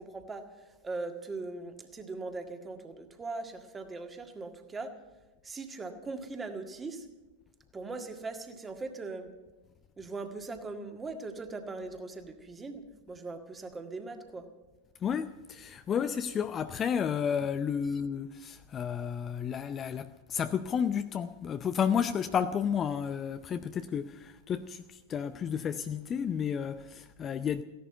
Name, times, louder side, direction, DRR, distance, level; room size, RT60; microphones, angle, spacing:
voice 1, 0.0-4.9 5.4-7.1 7.7-9.3 10.0-14.5, right 3 dB, 15° right, 1.8 m, -40 dB
voice 2, 15.0-27.6, left 7 dB, 25° left, 0.5 m, -32 dB
16.0 x 11.5 x 7.9 m
figure-of-eight pair, 90°, 0 cm